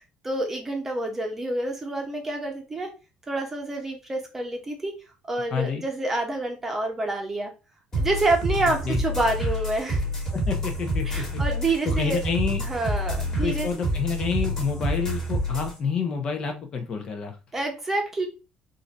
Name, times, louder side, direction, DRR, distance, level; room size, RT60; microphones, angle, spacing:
voice 1, 0.2-2.9 3.3-4.9 5.3-7.5 8.0-10.3 11.1-12.2 12.6-13.7 17.5-18.3, right 2 dB, 15° right, 2 dB, 0.9 m, -28 dB
voice 2, 5.5-5.9 8.8-9.0 10.3-11.4 11.8-12.6 13.4-17.4, left 5 dB, 35° left, 4 dB, 0.7 m, -28 dB
sound 1, 7.9-15.7, equal, 20° left, 1.5 m, -28 dB
3.8 x 2.6 x 4.0 m, 0.30 s
cardioid pair, 160°, 3 cm